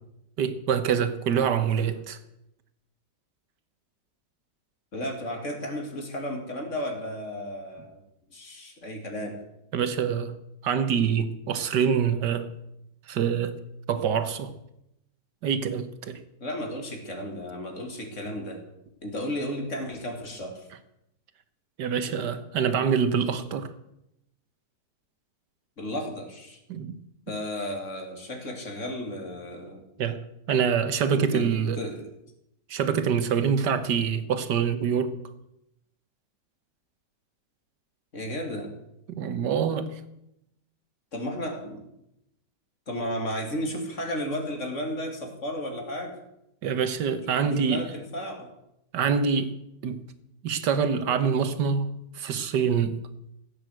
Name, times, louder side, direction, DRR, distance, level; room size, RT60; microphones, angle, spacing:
voice 1, 0.4-2.2 9.7-10.3 10.6-12.5 13.1-13.6 13.9-14.5 15.4-16.2 21.8-23.7 26.7-27.0 30.0-31.8 32.7-35.2 39.1-39.9 46.6-47.8 48.9-49.5 49.8-50.0 50.4-53.0, right 7 dB, 80° right, 1.8 m, -25 dB
voice 2, 4.9-8.0 8.3-9.4 16.4-18.6 19.0-20.7 25.8-26.6 27.3-29.8 31.1-32.1 38.1-38.7 41.1-41.9 42.9-46.2 47.3-48.5, equal, 45° left, 2.8 m, -34 dB
15.5 x 8.9 x 7.8 m
omnidirectional pair, 1.8 m